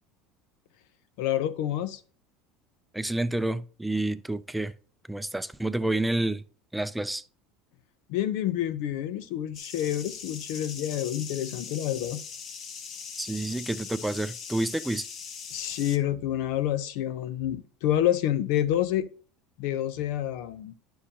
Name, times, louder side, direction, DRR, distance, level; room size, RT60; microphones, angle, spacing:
voice 1, 1.2-2.0 8.1-12.2 15.5-19.1 19.6-20.7, left 12 dB, 70° left, 0.7 m, -28 dB
voice 2, 2.9-4.7 5.1-6.4 6.7-7.2 13.2-15.0, right 1 dB, 5° right, 0.5 m, -29 dB
sound 1, 9.5-16.0, left 6 dB, 50° left, 1.1 m, -41 dB
11.5 x 5.5 x 2.9 m
hypercardioid pair, 90°, 0 cm